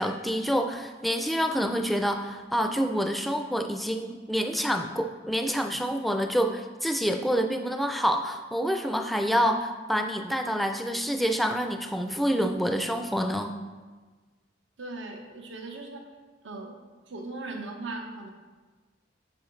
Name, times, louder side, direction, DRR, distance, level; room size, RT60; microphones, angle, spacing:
voice 1, 0.0-13.6, equal, ahead, 5 dB, 0.4 m, -27 dB
voice 2, 14.8-16.1 16.4-16.8 17.1-18.3, right 2 dB, 85° right, 3 dB, 0.9 m, -38 dB
10.5 x 4.5 x 3.1 m, 1.4 s
head